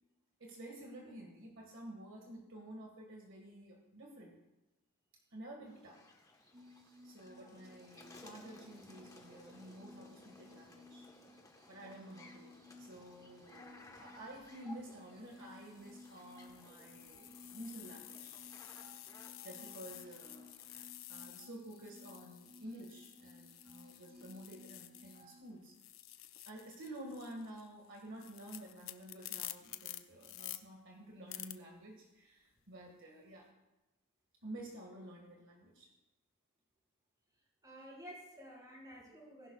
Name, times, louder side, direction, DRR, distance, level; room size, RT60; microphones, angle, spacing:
voice 1, 0.4-4.4 5.3-6.0 7.0-11.1 11.7-12.5 12.8-18.4 19.4-20.5 21.1-25.7 26.5-33.5 34.4-35.9, right 1 dB, 60° right, 0 dB, 1.8 m, -51 dB
sound 1, 5.7-20.9, left 2 dB, 15° left, 1.2 m, -60 dB
sound 2, 6.5-25.4, left 2 dB, 45° right, 3.2 m, -59 dB
sound 3, 14.2-14.5 15.2-25.4 25.7-30.6 31.3-31.5, left 14 dB, 60° left, 0.6 m, -51 dB
voice 2, 37.6-39.5, equal, 15° right, -5 dB, 5.0 m, -52 dB
19.5 x 11.5 x 2.4 m, 1.0 s
head